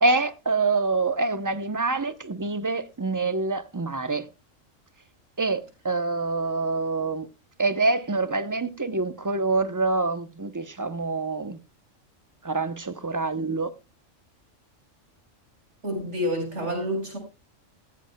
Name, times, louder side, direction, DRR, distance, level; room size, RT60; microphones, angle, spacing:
voice 1, 0.0-4.3 5.4-7.3 7.6-11.6 12.4-13.7, right 3 dB, 20° right, 0.6 m, -26 dB
voice 2, 15.8-17.2, equal, 60° right, 5.0 m, -28 dB
15.5 x 14.0 x 2.2 m
omnidirectional pair, 1.3 m